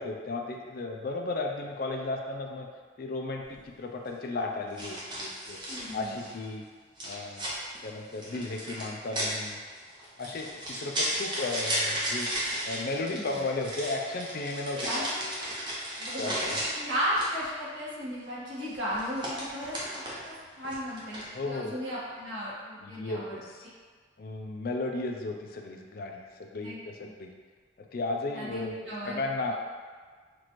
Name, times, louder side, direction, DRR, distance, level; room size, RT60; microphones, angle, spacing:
voice 1, 0.0-2.7 3.0-5.6 5.9-6.6 7.0-7.5 7.8-9.6 10.2-12.3 12.7-15.0 16.2-16.6 21.3-21.7 22.8-23.7 24.2-27.3 27.8-29.5, left 2 dB, 50° left, 2 dB, 0.4 m, -34 dB
sound 1, 3.4-3.6 4.8-6.4 7.0-17.5 18.6-20.3 20.6-21.4, equal, 25° right, 0.8 m, -34 dB
voice 2, 5.7-6.2 13.1-13.3 14.7-15.4 16.0-23.4 26.6-26.8 27.0-27.1 28.3-29.5, equal, 80° right, -8 dB, 1.5 m, -35 dB
6.0 x 2.5 x 3.0 m, 1.5 s
head